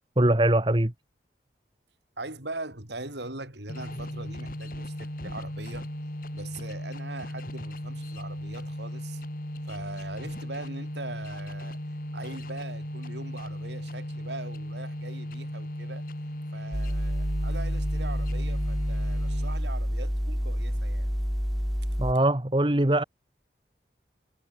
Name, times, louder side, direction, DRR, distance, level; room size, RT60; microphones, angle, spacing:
voice 1, 0.2-0.9 22.0-23.0, right 1 dB, 25° right, 1.3 m, -22 dB
voice 2, 2.2-5.9 6.3-9.2 9.6-11.8 12.1-16.1 16.5-21.1, right 2 dB, 70° right, 6.3 m, -41 dB
sound 1, 3.7-19.8, left 1 dB, 50° left, 3.3 m, -37 dB
sound 2, 16.7-22.1, equal, ahead, 2.1 m, -28 dB
head